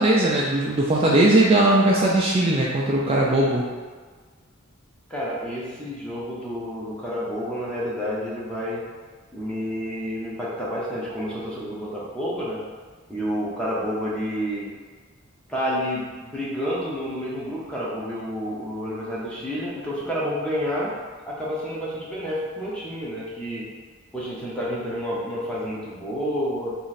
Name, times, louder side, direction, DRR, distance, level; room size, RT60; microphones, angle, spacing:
voice 1, 0.0-3.7, right 1 dB, 30° right, -4 dB, 0.4 m, -19 dB
voice 2, 5.1-8.8 9.3-12.6 13.1-14.7 15.5-20.9 21.3-23.7 24.1-26.8, equal, 5° left, -7 dB, 0.7 m, -29 dB
3.0 x 2.5 x 4.0 m, 1.5 s
head